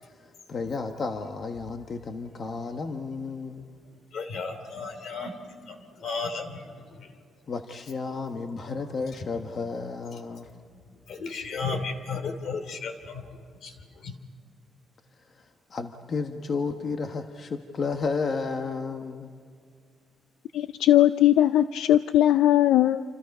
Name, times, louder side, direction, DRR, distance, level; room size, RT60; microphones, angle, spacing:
voice 1, 0.1-3.7 7.5-10.5 15.3-19.4, left 4 dB, 40° left, 5 dB, 1.2 m, -32 dB
voice 2, 4.1-7.1 10.3-10.4 10.9-14.2, left 4 dB, 55° left, 8 dB, 3.0 m, -35 dB
voice 3, 20.5-23.0, left 13 dB, 80° left, 12 dB, 0.5 m, -19 dB
28.5 x 26.5 x 5.4 m, 2.1 s
cardioid pair, 150°, 0 cm